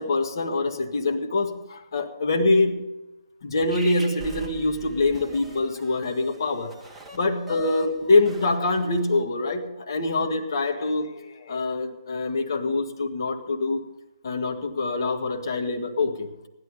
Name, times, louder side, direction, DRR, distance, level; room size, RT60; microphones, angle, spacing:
voice 1, 0.0-2.8 3.4-6.7 7.1-13.8 14.2-16.3, left 2 dB, 50° left, 4 dB, 1.8 m, -25 dB
sound 1, 3.7-9.2, right 1 dB, 5° right, 1.9 m, -43 dB
15.5 x 11.5 x 5.2 m, 0.97 s
figure-of-eight pair, 130°, 3 cm